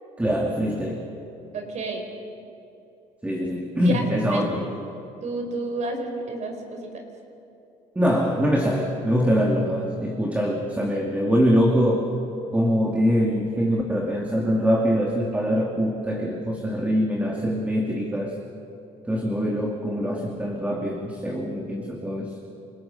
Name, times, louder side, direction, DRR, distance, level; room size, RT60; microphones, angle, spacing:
voice 1, 0.2-1.1 3.2-4.6 8.0-12.1 12.5-18.4 19.1-22.4, equal, 10° right, 0 dB, 2.3 m, -23 dB
voice 2, 1.5-2.1 3.8-4.7 5.2-7.0, right 2 dB, 50° right, 4 dB, 4.6 m, -31 dB
28.5 x 19.5 x 5.7 m, 2.9 s
supercardioid pair, 90°, 15 cm